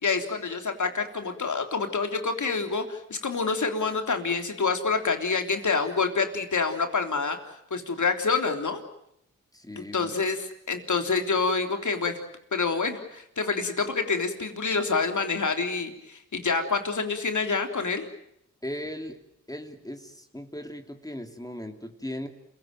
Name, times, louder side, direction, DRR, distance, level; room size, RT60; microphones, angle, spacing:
voice 1, 0.0-7.4 7.7-8.8 9.8-12.2 12.5-18.1, left 4 dB, 60° left, 5 dB, 3.5 m, -27 dB
voice 2, 9.5-10.1 18.6-19.2 19.5-22.3, left 1 dB, 10° left, 5 dB, 2.9 m, -38 dB
28.0 x 17.5 x 9.2 m, 0.78 s
cardioid pair, 50°, 33 cm